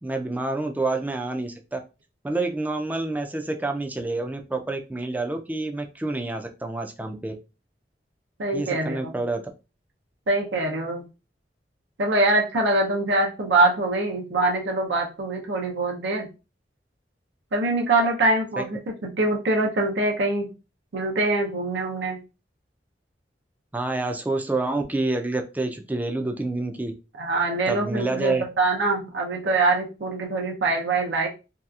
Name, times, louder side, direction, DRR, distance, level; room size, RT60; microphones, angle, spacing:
voice 1, 0.0-1.8 2.2-7.3 8.5-9.4 18.6-18.7 23.7-26.9 27.7-28.4, right 2 dB, 10° right, 4 dB, 0.3 m, -28 dB
voice 2, 8.4-9.1 10.3-11.0 12.0-16.3 17.5-20.5 20.9-22.2 27.2-31.3, right 2 dB, 85° right, 0 dB, 0.6 m, -24 dB
2.7 x 2.3 x 2.3 m, 0.30 s
head